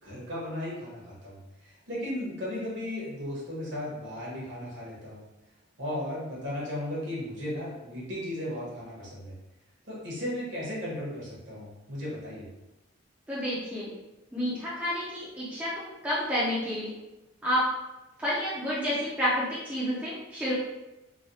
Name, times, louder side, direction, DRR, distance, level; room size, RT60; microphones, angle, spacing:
voice 1, 0.0-5.2 5.8-9.3 9.9-12.5, left 1 dB, 55° right, -6 dB, 1.1 m, -36 dB
voice 2, 13.3-13.9 14.3-16.9 17.4-17.7 18.2-20.5, equal, 5° right, -10 dB, 0.6 m, -29 dB
3.1 x 2.2 x 2.7 m, 1.0 s
head